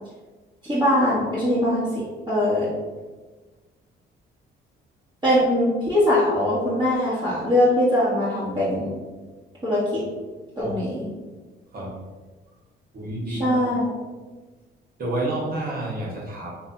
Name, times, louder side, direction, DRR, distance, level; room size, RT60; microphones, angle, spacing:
voice 1, 0.6-2.7 5.2-8.9 9.6-10.0 10.6-11.0 13.3-13.9, left 1 dB, 20° right, -11 dB, 1.5 m, -22 dB
voice 2, 11.7-12.0 12.9-13.6 15.0-16.5, right 1 dB, 50° right, -4 dB, 1.4 m, -29 dB
3.2 x 2.8 x 3.7 m, 1.3 s
cardioid pair, 90°, 20 cm